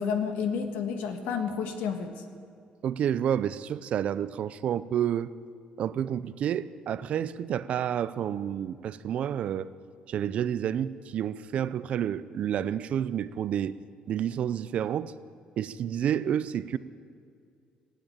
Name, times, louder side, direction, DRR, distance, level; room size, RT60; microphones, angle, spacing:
voice 1, 0.0-2.2, left 6 dB, 90° left, 6 dB, 1.6 m, -30 dB
voice 2, 2.8-5.3 5.8-9.7 10.1-13.7 14.1-15.1 15.6-16.8, right 9 dB, 50° right, 15 dB, 0.5 m, -29 dB
17.0 x 9.0 x 8.7 m, 2.3 s
cardioid pair, 145°, 3 cm